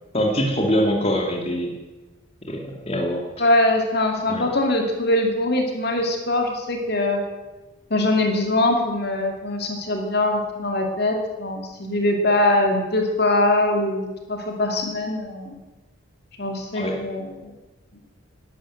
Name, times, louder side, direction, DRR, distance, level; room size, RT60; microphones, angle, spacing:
voice 1, 0.1-1.7 2.5-3.2 4.3-4.4 16.7-17.0, equal, 30° left, 1 dB, 2.3 m, -23 dB
voice 2, 3.4-7.2 7.9-15.6 16.4-17.3, left 1 dB, 50° left, 3 dB, 2.5 m, -22 dB
12.5 x 11.5 x 9.1 m, 1.1 s
head